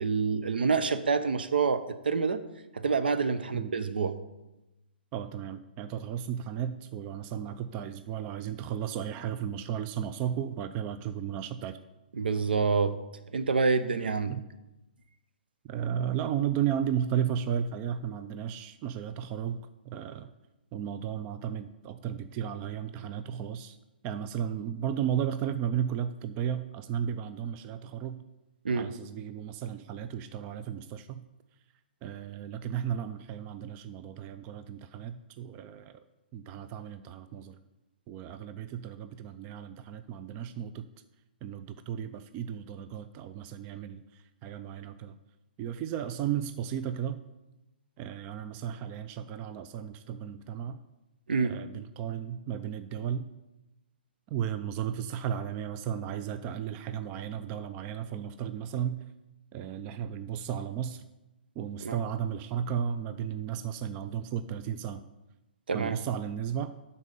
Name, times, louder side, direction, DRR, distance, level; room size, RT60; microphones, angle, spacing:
voice 1, 0.0-2.4 2.7-4.2 12.1-13.0 13.3-14.4 28.6-28.9 51.3-51.6 61.8-62.0 65.7-66.0, right 5 dB, 75° right, 11 dB, 0.7 m, -27 dB
voice 2, 5.1-11.8 14.3-14.4 15.6-20.3 20.7-23.8 24.0-28.2 28.7-31.2 32.0-36.0 36.3-37.6 38.1-40.9 41.4-45.2 45.6-47.2 48.0-50.8 51.4-53.3 54.3-59.1 59.5-61.0 61.6-65.1 65.7-66.7, right 9 dB, 30° right, 11 dB, 0.4 m, -34 dB
11.0 x 4.2 x 5.3 m, 0.99 s
hypercardioid pair, 130°, 5 cm